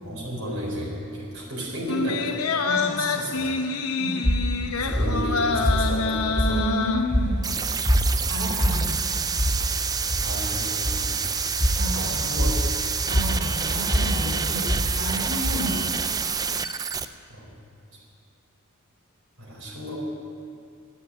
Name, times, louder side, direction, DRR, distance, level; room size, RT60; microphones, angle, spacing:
voice 1, 0.0-3.5 4.7-6.7 7.3-7.4 7.7-7.8 10.2-11.2 11.9-12.7 17.3-17.5 19.4-20.0, equal, 65° right, -4 dB, 4.0 m, -33 dB
sound 1, 1.9-7.5 7.9-8.0, left 4 dB, 75° left, 0.9 m, -26 dB
voice 2, 2.6-3.2 4.0-4.2 6.5-7.4 8.3-8.9 11.8-12.1 13.1-14.7 15.0-15.7, equal, 45° right, -5 dB, 4.0 m, -31 dB
sound 2, 4.2-16.2, equal, 5° left, 1.8 m, -26 dB
sound 3, 7.4-17.1, right 6 dB, 15° right, 0.4 m, -28 dB
12.5 x 10.5 x 9.6 m, 2.4 s
head